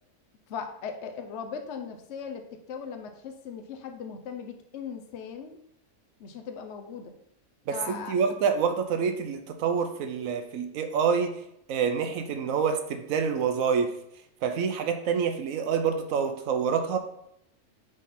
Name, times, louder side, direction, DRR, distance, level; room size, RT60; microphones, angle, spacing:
voice 1, 0.5-2.4 2.7-5.6 6.2-7.1 7.7-8.2, left 6 dB, 60° left, 5 dB, 1.0 m, -38 dB
voice 2, 7.7-11.4 11.7-13.9 14.4-17.0, right 6 dB, 85° right, 7 dB, 1.1 m, -27 dB
9.8 x 3.8 x 4.2 m, 0.76 s
omnidirectional pair, 1.4 m